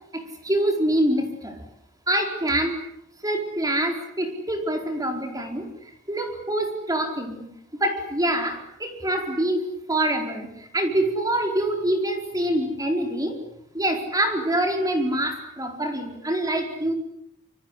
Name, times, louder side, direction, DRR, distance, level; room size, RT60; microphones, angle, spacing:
voice 1, 0.1-1.6 2.1-2.7 3.2-5.7 6.1-7.4 7.7-13.3 13.7-16.9, right 1 dB, 15° right, 4 dB, 4.5 m, -25 dB
26.5 x 25.0 x 8.4 m, 0.76 s
head